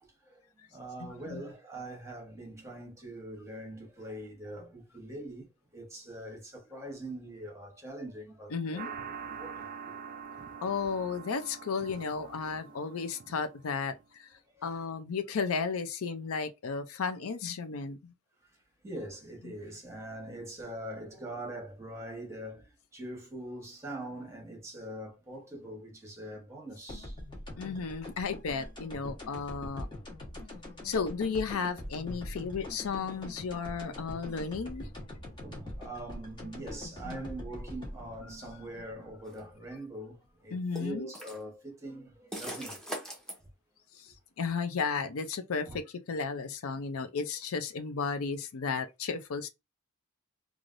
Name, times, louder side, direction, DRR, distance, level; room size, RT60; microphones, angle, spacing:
voice 1, 0.0-9.9 14.5-14.9 18.4-18.6 18.8-27.2 30.6-30.8 35.4-42.8 45.6-45.8, right 1 dB, 15° right, 1.0 m, -43 dB
voice 2, 1.0-1.4 8.5-8.9 10.6-14.3 14.6-18.1 27.6-29.9 30.8-34.9 37.0-37.2 40.5-41.1 43.9-49.5, left 5 dB, 70° left, 0.5 m, -34 dB
sound 1, 8.8-14.0, right 6 dB, 40° right, 0.3 m, -45 dB
sound 2, 26.9-39.7, left 1 dB, 20° left, 1.1 m, -43 dB
sound 3, 39.2-39.4 40.8-41.4 42.3-43.4, right 1 dB, 5° left, 0.7 m, -40 dB
3.2 x 2.4 x 2.5 m
head